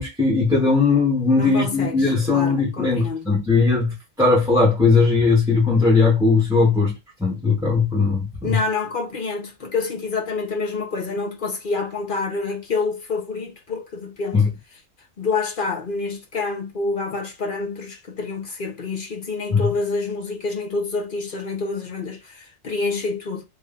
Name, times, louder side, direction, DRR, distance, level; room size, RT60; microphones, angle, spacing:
voice 1, 0.0-6.9 7.2-8.6 14.3-14.5 19.5-19.7, left 4 dB, 5° right, 1.0 m, -18 dB
voice 2, 1.3-3.3 8.4-14.4 15.2-23.4, left 4 dB, 45° left, 1.0 m, -27 dB
3.2 x 2.6 x 3.6 m
omnidirectional pair, 1.3 m